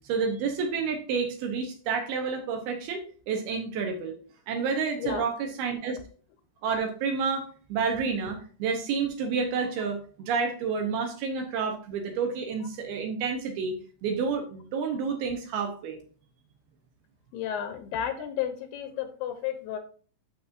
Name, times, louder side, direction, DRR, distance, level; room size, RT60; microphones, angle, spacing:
voice 1, 0.1-4.1 4.5-6.0 6.6-7.4 7.7-13.8 14.0-16.0, right 5 dB, 75° right, 4 dB, 2.5 m, -29 dB
voice 2, 17.3-19.8, left 9 dB, 80° left, 7 dB, 2.5 m, -32 dB
12.0 x 4.3 x 2.6 m, 0.41 s
omnidirectional pair, 5.1 m